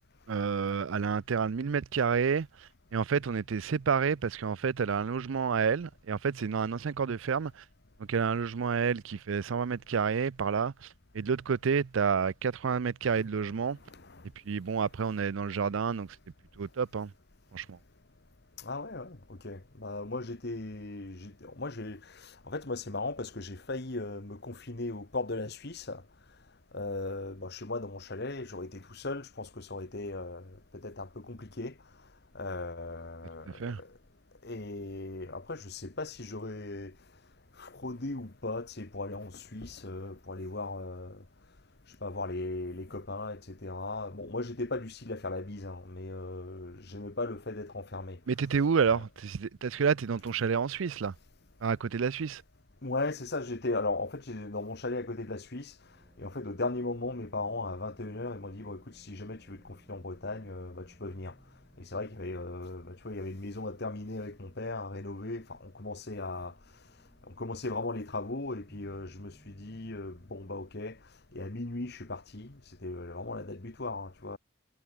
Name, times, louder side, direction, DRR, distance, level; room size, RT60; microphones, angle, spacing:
voice 1, 0.3-7.6 8.1-13.8 14.4-16.2 16.6-17.1 17.5-17.8 33.5-33.8 48.3-51.1 51.6-52.4, right 6 dB, 65° right, 0.5 m, -29 dB
voice 2, 13.9-14.2 18.6-26.0 26.7-31.7 32.3-33.9 34.4-36.9 37.6-41.2 41.9-48.2 48.9-49.0 52.8-55.8 56.2-61.3 61.8-66.5 67.3-71.0 71.3-74.4, left 2 dB, 50° left, 1.4 m, -37 dB
sound 1, 55.9-70.6, equal, 15° right, 7.0 m, -63 dB
head